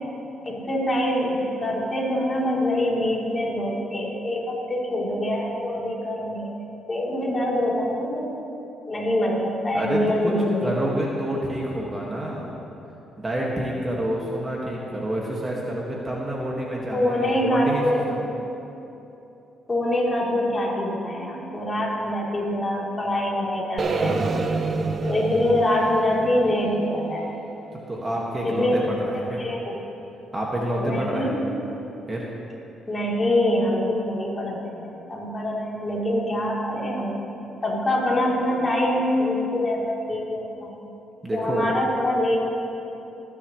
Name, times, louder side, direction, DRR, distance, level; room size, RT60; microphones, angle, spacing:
voice 1, 0.4-8.3 8.9-10.7 16.9-18.1 19.7-24.5 25.0-27.3 28.4-28.8 29.4-29.8 30.8-31.5 32.9-37.2 37.6-40.8 41.3-42.4, left 1 dB, 25° left, -5 dB, 3.5 m, -24 dB
voice 2, 9.7-10.3 10.6-12.5 13.2-17.8 18.1-18.2 27.9-29.4 30.3-31.3 32.1-32.2 41.2-41.7, right 1 dB, 20° right, -3 dB, 1.9 m, -28 dB
sound 1, 23.8-27.8, right 3 dB, 45° right, 0.8 m, -28 dB
24.5 x 10.0 x 3.2 m, 2.9 s
cardioid pair, 90°, 0 cm